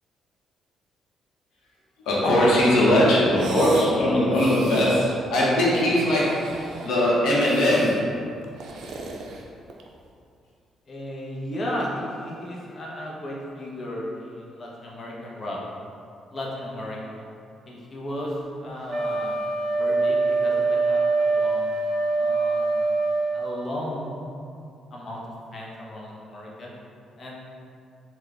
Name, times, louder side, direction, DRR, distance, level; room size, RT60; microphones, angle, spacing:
voice 1, 2.0-7.9, left 1 dB, 80° left, -6 dB, 1.0 m, -20 dB
sound 1, 3.3-3.9 4.3-5.0 5.8-7.0 7.4-8.0 8.4-10.0, right 3 dB, 75° right, 0.4 m, -39 dB
voice 2, 10.9-15.6 16.3-17.2 17.7-19.4 19.8-23.0 23.3-24.3 24.9-26.7 27.2-27.4, left 1 dB, 45° left, -4 dB, 0.8 m, -35 dB
Wind instrument woodwind instrument, 18.9-23.3, right 3 dB, 10° right, 0.8 m, -23 dB
3.7 x 2.3 x 3.3 m, 2.4 s
cardioid pair, 90°, 0 cm